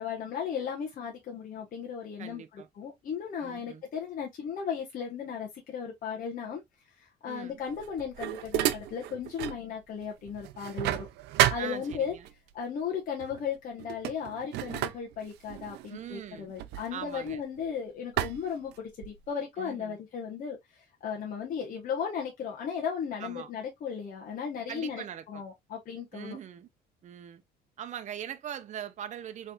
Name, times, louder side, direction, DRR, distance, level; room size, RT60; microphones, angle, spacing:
voice 1, 0.0-6.6 7.0-11.1 11.5-12.1 12.5-26.4, left 7 dB, 55° left, 1.1 m, -36 dB
voice 2, 2.2-2.7 3.4-3.8 7.3-7.6 11.6-12.3 15.9-16.5 16.9-17.4 19.6-20.0 23.2-23.5 24.7-25.4 26.1-26.7 27.0-27.4 27.8-29.5, right 10 dB, 45° right, 0.6 m, -41 dB
sound 1, 7.6-9.7 10.0-12.3 13.2-13.4 13.8-17.6 18.2-19.3, right 14 dB, 85° right, 0.5 m, -32 dB
4.2 x 3.3 x 2.3 m
cardioid pair, 110°, 17 cm